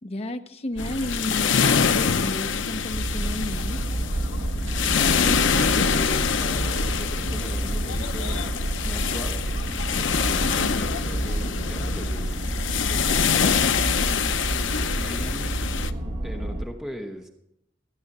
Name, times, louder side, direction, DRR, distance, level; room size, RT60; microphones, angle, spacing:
voice 1, 0.0-1.6 1.9-3.8 14.7-15.5, left 1 dB, 35° left, 7 dB, 0.8 m, -33 dB
sound 1, 0.7-11.4, right 2 dB, 70° right, 0.7 m, -38 dB
sound 2, 0.8-15.9, left 6 dB, 75° left, 0.7 m, -25 dB
sound 3, 2.9-16.6, right 1 dB, 50° right, 1.3 m, -29 dB
voice 2, 4.3-9.5 10.0-12.5 12.9-13.6 15.0-15.6 16.2-17.3, equal, 5° right, 3 dB, 1.1 m, -39 dB
15.5 x 9.2 x 5.4 m, 0.80 s
head